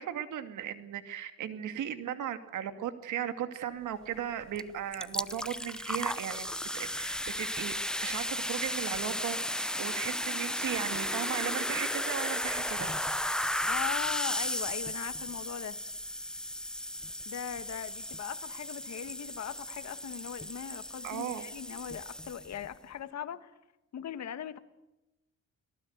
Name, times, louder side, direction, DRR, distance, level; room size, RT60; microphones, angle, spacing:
voice 1, 0.0-6.5 6.7-7.7 8.0-12.9 21.0-21.4, right 10 dB, 80° right, 2.5 m, -36 dB
sound 1, 4.6-4.7 4.9-22.7, left 1 dB, ahead, 0.8 m, -35 dB
voice 2, 13.6-15.8 17.3-23.5 23.9-24.6, left 9 dB, 60° left, 1.9 m, -40 dB
30.0 x 18.5 x 8.2 m
cardioid pair, 90°, 30 cm